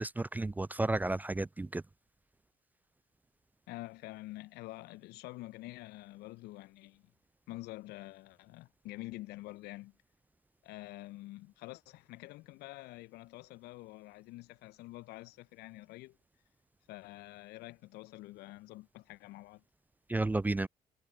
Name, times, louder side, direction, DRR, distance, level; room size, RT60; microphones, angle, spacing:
voice 1, 0.0-1.8 20.1-20.7, right 2 dB, 10° right, 0.3 m, -32 dB
voice 2, 3.7-7.0 7.5-9.9 10.6-16.2 16.9-19.6, left 19 dB, 60° left, 1.0 m, -47 dB
figure-of-eight pair, 45°, 18 cm